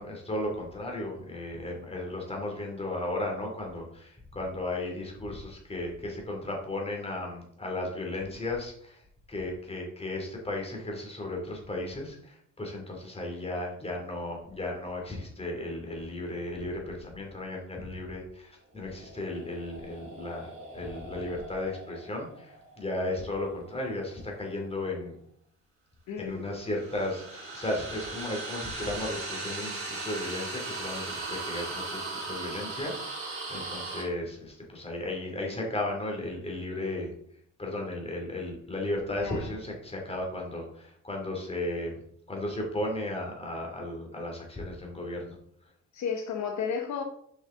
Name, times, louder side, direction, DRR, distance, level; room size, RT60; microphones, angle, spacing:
voice 1, 0.0-9.0 9.3-25.2 26.2-37.1 37.6-42.0 42.3-45.4, left 1 dB, 20° left, 0 dB, 2.7 m, -35 dB
sound 1, 18.9-24.1 26.5-34.0, right 3 dB, 45° right, 3.2 m, -39 dB
voice 2, 26.1-26.4 39.2-39.5 45.9-47.0, left 6 dB, 65° left, 3 dB, 1.0 m, -33 dB
7.0 x 5.6 x 3.8 m, 0.68 s
cardioid pair, 90°, 30 cm